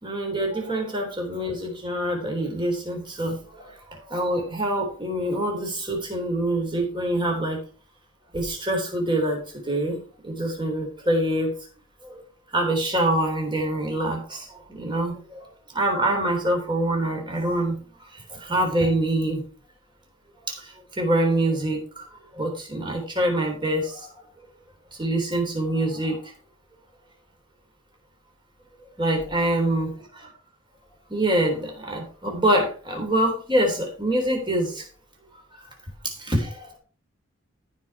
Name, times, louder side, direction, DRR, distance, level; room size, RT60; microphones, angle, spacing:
voice 1, 0.0-7.6 8.3-11.5 12.0-12.2 12.5-15.5 15.7-19.4 20.5-22.1 22.3-24.1 25.0-26.3 29.0-30.3 31.1-34.8 35.5-35.6 36.0-36.8, right 1 dB, 25° right, 1 dB, 3.5 m, -25 dB
14.5 x 5.3 x 4.5 m, 0.38 s
head